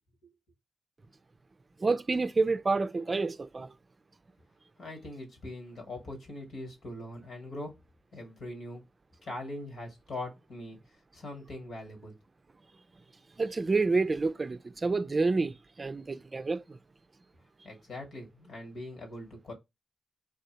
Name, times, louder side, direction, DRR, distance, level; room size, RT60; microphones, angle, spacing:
voice 1, 1.8-3.7 13.4-16.8, right 3 dB, 45° right, 0.4 m, -28 dB
voice 2, 4.8-7.7 8.1-8.8 9.2-10.8 11.1-12.2 17.6-19.5, left 1 dB, 75° left, 2.0 m, -41 dB
3.5 x 2.7 x 4.3 m
supercardioid pair, 40°, 0 cm